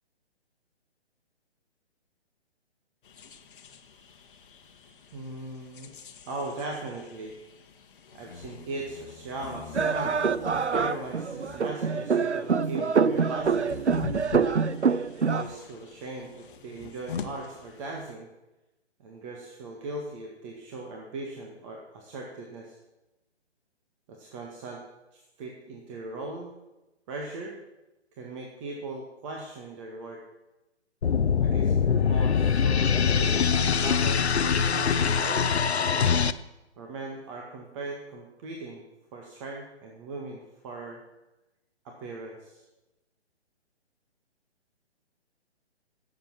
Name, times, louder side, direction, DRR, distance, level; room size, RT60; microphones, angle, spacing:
sound 1, 3.0-18.1, left 6 dB, 50° left, 1.4 m, -44 dB
voice 1, 5.1-5.9 6.3-7.3 8.1-10.2 10.5-13.8 15.3-18.3 19.0-22.8 24.1-24.8 25.1-26.5 27.1-27.6 28.2-30.2 31.4-35.7 36.8-38.8 39.1-41.0 41.8-42.6, right 2 dB, 30° right, 0 dB, 1.9 m, -39 dB
sound 2, 9.7-15.4, right 5 dB, 90° right, 0.7 m, -25 dB
sound 3, 31.0-36.3, left 6 dB, 70° left, 0.8 m, -23 dB
18.0 x 7.8 x 6.0 m, 1.0 s
figure-of-eight pair, 135°, 33 cm